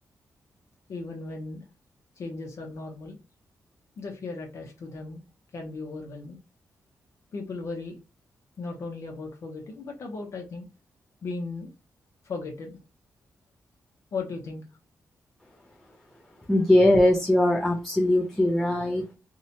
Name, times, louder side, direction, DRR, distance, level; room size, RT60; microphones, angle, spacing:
voice 1, 0.9-1.7 2.2-3.2 4.0-5.2 5.5-6.4 7.3-8.0 8.6-10.7 11.2-11.7 12.2-12.8 14.1-14.6, left 3 dB, 55° left, 2 dB, 0.6 m, -36 dB
voice 2, 16.5-19.1, left 1 dB, 5° left, -3 dB, 0.4 m, -21 dB
2.7 x 2.1 x 2.6 m, 0.30 s
wide cardioid pair, 145°, 6 cm